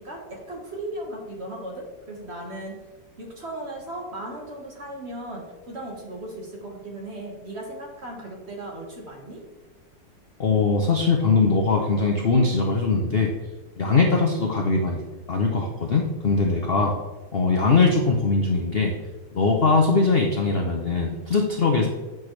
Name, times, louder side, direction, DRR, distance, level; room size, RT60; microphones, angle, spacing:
voice 1, 0.0-2.7 3.2-9.4, right 1 dB, 35° right, -1 dB, 1.6 m, -36 dB
voice 2, 10.4-13.3 13.8-15.0 15.3-16.9 17.3-18.9 19.3-21.9, left 4 dB, 50° left, 1 dB, 0.7 m, -21 dB
9.1 x 6.1 x 3.2 m, 1.3 s
omnidirectional pair, 2.1 m